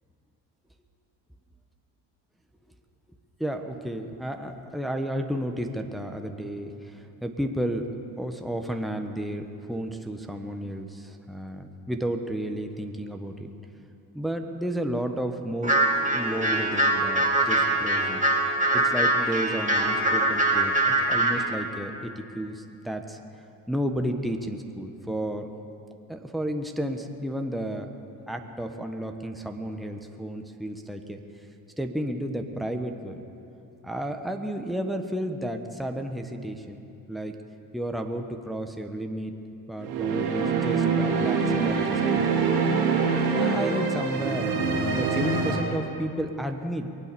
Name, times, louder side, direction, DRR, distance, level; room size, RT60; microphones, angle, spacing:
voice 1, 3.4-13.5 14.1-18.2 18.7-23.2 23.7-25.5 26.1-27.9 28.3-31.2 31.8-33.2 33.8-36.8 37.1-37.3 37.7-39.3 39.7-42.3 43.4-44.5 45.0-46.9, right 1 dB, ahead, 4 dB, 1.3 m, -32 dB
sound 1, 15.6-21.4, right 1 dB, 15° right, 2.5 m, -23 dB
sound 2, 39.8-45.6, right 5 dB, 85° right, 3.3 m, -24 dB
23.0 x 8.5 x 7.0 m, 2.7 s
hypercardioid pair, 60°, 47 cm